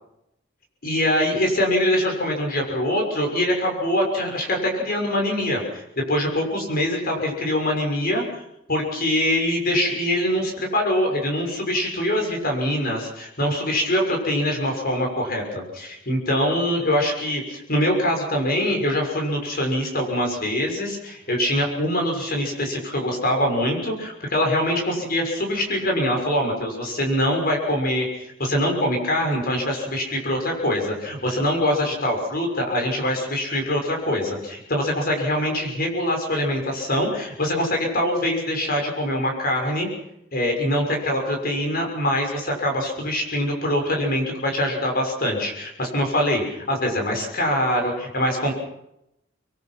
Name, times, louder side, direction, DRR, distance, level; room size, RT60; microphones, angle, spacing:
voice 1, 0.8-8.2 8.7-39.9 40.3-48.5, left 1 dB, 50° left, 2 dB, 6.3 m, -23 dB
26.0 x 22.0 x 6.0 m, 0.81 s
head